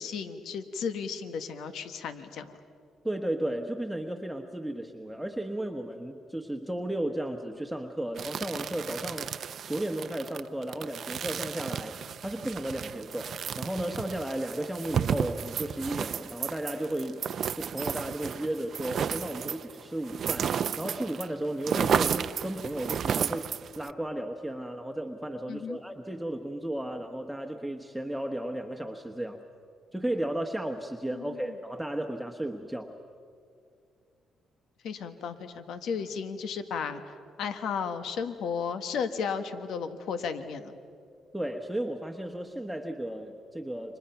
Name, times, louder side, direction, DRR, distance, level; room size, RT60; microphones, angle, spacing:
voice 1, 0.0-2.6 25.5-25.8 31.1-31.4 34.8-40.8, left 6 dB, 75° left, 9 dB, 1.4 m, -34 dB
voice 2, 3.0-9.3 9.7-17.2 17.6-23.5 23.8-29.4 29.9-32.9 41.3-44.0, right 1 dB, 5° right, 2 dB, 1.2 m, -34 dB
sound 1, 8.2-21.3 21.5-23.9, right 8 dB, 60° right, 0.6 m, -33 dB
30.0 x 25.5 x 5.8 m, 2.3 s
cardioid pair, 90°, 0 cm